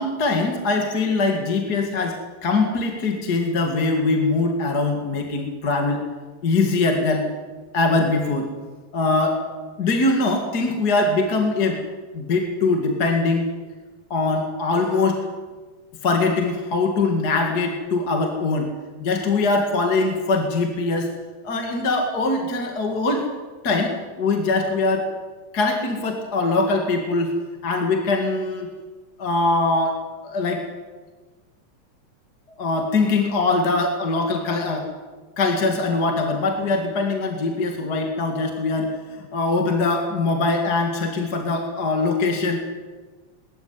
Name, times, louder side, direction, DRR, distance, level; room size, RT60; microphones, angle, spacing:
voice 1, 0.0-6.0 6.4-7.3 7.7-8.5 8.9-9.4 9.8-11.8 12.1-13.5 14.1-15.3 16.0-18.7 19.0-21.1 21.4-23.3 23.6-25.1 25.5-27.3 27.6-28.7 29.2-30.0 30.2-30.6 32.6-34.9 35.4-42.6, left 3 dB, 35° left, 3 dB, 2.1 m, -22 dB
21.0 x 13.5 x 9.6 m, 1.3 s
omnidirectional pair, 3.8 m